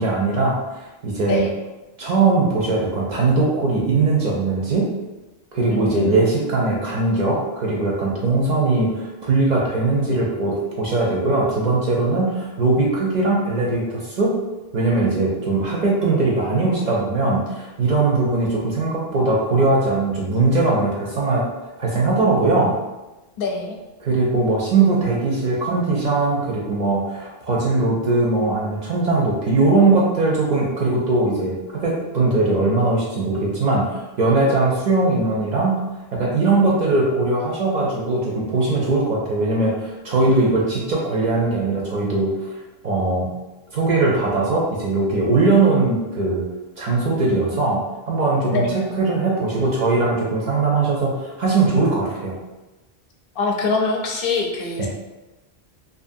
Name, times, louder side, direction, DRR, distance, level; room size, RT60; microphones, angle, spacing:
voice 1, 0.0-1.5 2.0-4.9 5.5-14.4 14.7-21.5 21.8-22.7 24.0-35.8 36.1-42.5 42.8-43.3 43.7-46.4 46.8-52.4 54.8-54.9, right 3 dB, 55° right, -3 dB, 0.5 m, -20 dB
voice 2, 5.7-6.2 23.4-23.8 48.5-48.8 53.4-54.9, left 4 dB, 65° left, 1 dB, 0.7 m, -24 dB
2.6 x 2.5 x 2.5 m, 1.1 s
omnidirectional pair, 1.1 m